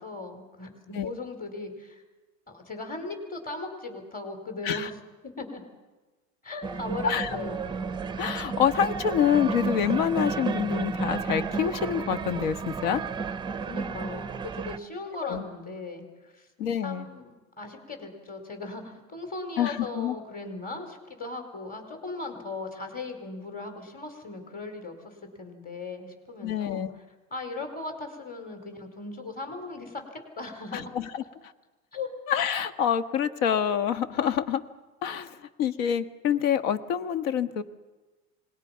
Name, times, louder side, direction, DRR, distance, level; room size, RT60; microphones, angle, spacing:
voice 1, 0.0-2.0 2.5-5.0 5.2-5.6 6.4-7.6 13.6-16.5 16.8-27.0 27.3-30.9 31.9-32.1, left 3 dB, 20° left, 5 dB, 4.4 m, -38 dB
sound 1, 6.6-14.8, right 5 dB, 10° right, 0.6 m, -32 dB
voice 2, 8.2-13.0 15.2-15.4 16.6-17.1 19.6-20.1 26.4-26.9 30.7-31.2 32.3-34.6 35.0-37.6, left 8 dB, 70° left, 11 dB, 1.6 m, -26 dB
27.0 x 20.0 x 5.8 m, 1.2 s
supercardioid pair, 130°, 41 cm